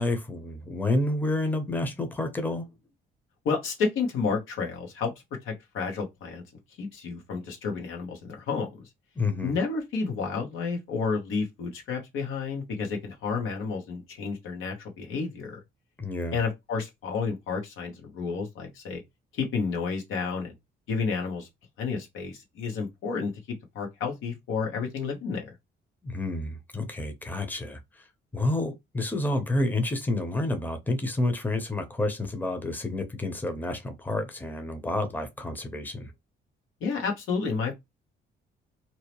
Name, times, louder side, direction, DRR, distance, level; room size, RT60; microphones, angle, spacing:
voice 1, 0.0-2.7 9.2-9.6 16.0-16.4 26.0-27.8 28.3-36.1, left 2 dB, 10° left, 0.7 m, -29 dB
voice 2, 3.4-5.1 5.4-6.4 6.8-8.9 9.4-15.6 16.3-19.0 19.3-20.5 20.9-21.5 21.8-25.5 36.8-37.8, left 5 dB, 85° left, 1.1 m, -31 dB
2.8 x 2.0 x 2.9 m
cardioid pair, 90°, 20 cm